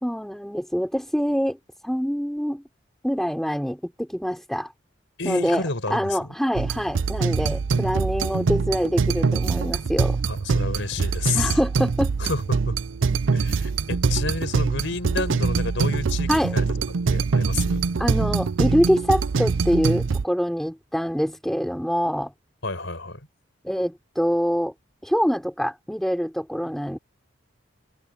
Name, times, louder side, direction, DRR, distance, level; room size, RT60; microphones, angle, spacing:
voice 1, 0.0-1.6 1.8-2.6 3.0-4.7 5.2-10.2 11.3-12.1 16.3-16.6 18.0-22.3 23.6-24.7 25.0-27.0, equal, ahead, 3.7 m, -25 dB
voice 2, 5.2-6.3 10.3-11.6 12.2-12.8 13.3-16.6 17.1-17.8 22.6-23.2, left 3 dB, 70° left, 4.7 m, -30 dB
sound 1, 6.5-20.2, right 4 dB, 75° right, 0.5 m, -24 dB
head